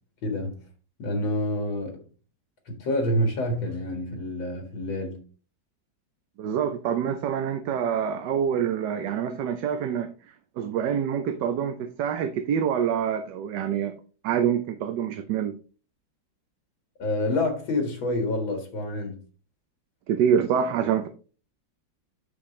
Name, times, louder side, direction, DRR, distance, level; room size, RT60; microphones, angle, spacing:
voice 1, 0.2-0.6 1.0-2.0 2.7-5.2 17.0-19.2, left 1 dB, 85° left, 2.5 m, -27 dB
voice 2, 6.4-10.1 10.6-13.9 14.2-15.6 20.1-21.1, right 8 dB, 70° right, 1.2 m, -26 dB
8.1 x 6.2 x 3.2 m
omnidirectional pair, 2.1 m